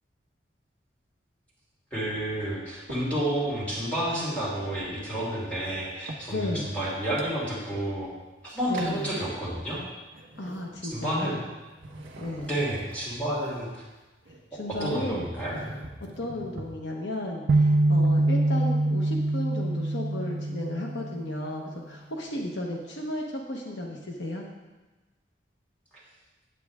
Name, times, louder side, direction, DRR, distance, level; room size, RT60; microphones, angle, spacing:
voice 1, 1.9-8.1 8.4-9.8 10.9-11.4 12.4-13.8 14.8-15.5, right 1 dB, 5° left, -8 dB, 2.7 m, -30 dB
sound 1, 2.9-3.8 4.3-6.4 6.8-8.0 8.3-9.2 9.6-11.4 11.7-16.7, right 1 dB, 75° right, 1.2 m, -44 dB
voice 2, 6.3-6.7 8.7-9.1 10.4-11.4 12.2-12.5 14.5-15.3 16.0-24.4, left 1 dB, 70° left, 0 dB, 1.0 m, -34 dB
sound 2, 17.5-21.5, right 2 dB, 55° right, 0.3 m, -24 dB
8.6 x 8.4 x 3.6 m, 1.2 s
head